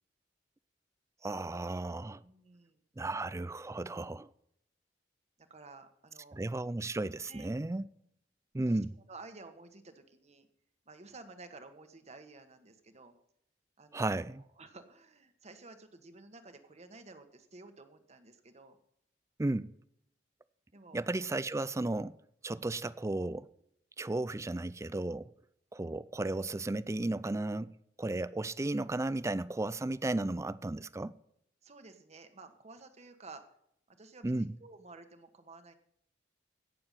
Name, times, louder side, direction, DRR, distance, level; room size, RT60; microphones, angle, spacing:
voice 1, 1.2-2.2 3.0-4.3 6.3-7.9 8.5-8.9 13.9-14.4 19.4-19.7 20.9-22.2 22.4-23.5 24.0-25.3 25.7-27.7 28.0-31.1 34.2-34.5, right 2 dB, 15° right, 0.4 m, -34 dB
voice 2, 2.2-2.8 5.4-6.4 7.3-7.5 8.7-8.8 9.1-10.5 10.9-13.1 13.8-18.8 20.7-21.0 31.6-33.4 33.9-35.8, right 3 dB, 40° right, 1.4 m, -53 dB
16.5 x 6.8 x 5.7 m
head